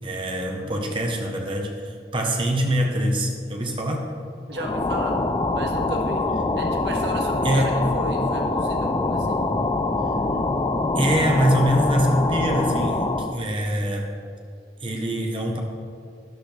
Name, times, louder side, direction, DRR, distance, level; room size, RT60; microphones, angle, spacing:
voice 1, 0.0-4.1 7.4-7.9 10.9-14.1 14.8-15.6, equal, 30° right, 2 dB, 1.0 m, -24 dB
voice 2, 0.5-0.9 4.5-5.2 5.5-6.2 6.6-9.4, right 1 dB, 70° right, 1 dB, 1.7 m, -34 dB
sound 1, 4.5-13.4, left 2 dB, 25° left, 0.5 m, -24 dB
12.5 x 12.0 x 3.3 m, 2.3 s
head